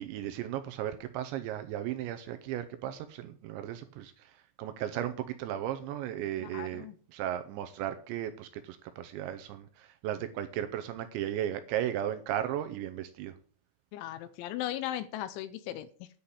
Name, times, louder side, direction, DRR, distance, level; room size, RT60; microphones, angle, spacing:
voice 1, 0.0-13.4, right 11 dB, 80° right, 9 dB, 2.8 m, -36 dB
voice 2, 6.4-6.9 13.9-16.1, left 12 dB, 80° left, 13 dB, 2.9 m, -37 dB
10.5 x 5.7 x 8.2 m, 0.43 s
omnidirectional pair, 5.7 m